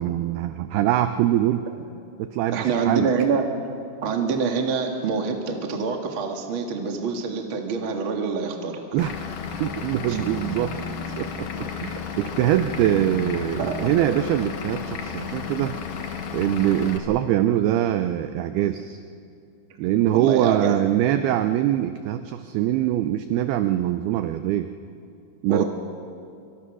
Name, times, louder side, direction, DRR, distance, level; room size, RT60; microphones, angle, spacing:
voice 1, 0.0-1.7 2.2-3.1 8.9-9.1 9.6-10.8 11.2-15.8 16.3-19.0 19.8-24.7 25.4-25.6, right 12 dB, 85° right, 9 dB, 2.2 m, -23 dB
voice 2, 2.5-3.4 4.0-8.8 10.1-10.2 13.6-14.1 20.1-20.8 21.1-21.3 25.5-25.6, right 5 dB, 55° right, 2 dB, 1.4 m, -26 dB
Vehicle / Engine, 9.0-17.0, left 6 dB, 60° left, 2.3 m, -33 dB
25.5 x 24.5 x 6.2 m, 2.5 s
omnidirectional pair, 5.3 m